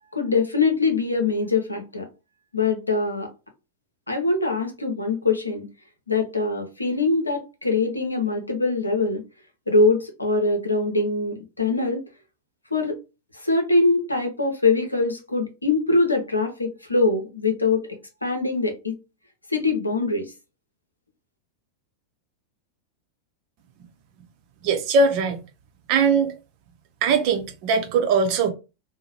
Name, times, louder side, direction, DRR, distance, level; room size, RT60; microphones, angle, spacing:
voice 1, 0.1-2.1 2.5-3.3 4.1-5.6 6.1-9.2 9.7-12.0 12.7-13.0 13.3-17.8 18.2-18.9 19.5-20.3, left 3 dB, 85° left, 0.7 m, -23 dB
voice 2, 24.6-25.4 25.9-26.3 27.0-28.5, right 4 dB, 45° right, 0.7 m, -20 dB
2.7 x 2.2 x 2.9 m
figure-of-eight pair, 90°, 0 cm